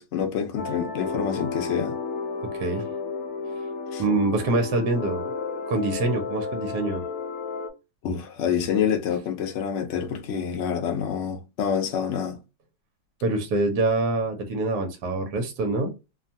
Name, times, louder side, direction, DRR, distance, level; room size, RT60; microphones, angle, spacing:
voice 1, 0.0-2.0 3.9-4.0 8.0-12.4, left 7 dB, 85° left, 0.6 m, -27 dB
sound 1, 0.6-7.7, left 4 dB, 65° left, 0.9 m, -32 dB
voice 2, 2.4-2.9 4.0-5.2 5.7-7.0 13.2-15.9, right 2 dB, 65° right, 1.1 m, -25 dB
3.0 x 2.2 x 2.6 m
omnidirectional pair, 2.0 m